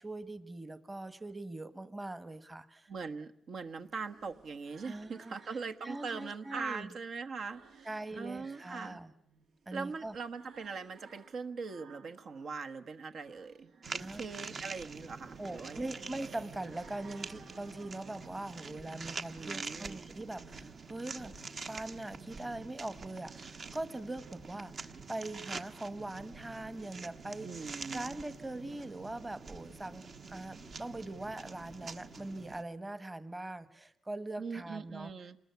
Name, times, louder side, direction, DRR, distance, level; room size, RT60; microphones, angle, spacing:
voice 1, 0.0-2.9 4.8-5.3 5.8-6.9 7.8-9.1 9.7-10.1 14.0-14.2 15.4-21.3 21.7-35.1, right 2 dB, 20° right, 12 dB, 1.2 m, -42 dB
voice 2, 2.9-9.0 9.7-15.8 19.3-20.0 27.4-28.2 34.4-35.4, right 5 dB, 65° right, 7 dB, 1.3 m, -41 dB
sound 1, 3.4-6.8 7.2-12.6 13.0-18.8, right 5 dB, 85° right, 2.1 m, -60 dB
sound 2, 13.8-32.6, right 4 dB, 50° right, 1.3 m, -46 dB
28.0 x 20.5 x 9.4 m, 0.72 s
cardioid pair, 105°, 0 cm